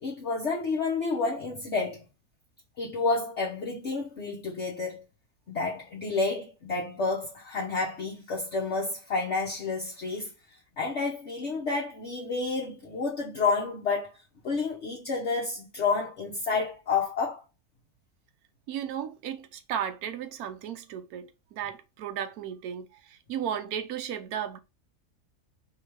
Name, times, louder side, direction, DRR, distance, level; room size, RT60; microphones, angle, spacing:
voice 1, 0.0-2.1 2.8-5.0 5.5-10.3 10.8-14.1 14.4-17.4, left 4 dB, 55° left, 1.0 m, -30 dB
voice 2, 18.7-24.6, right 9 dB, 75° right, 1.0 m, -35 dB
3.2 x 2.8 x 4.5 m
omnidirectional pair, 1.6 m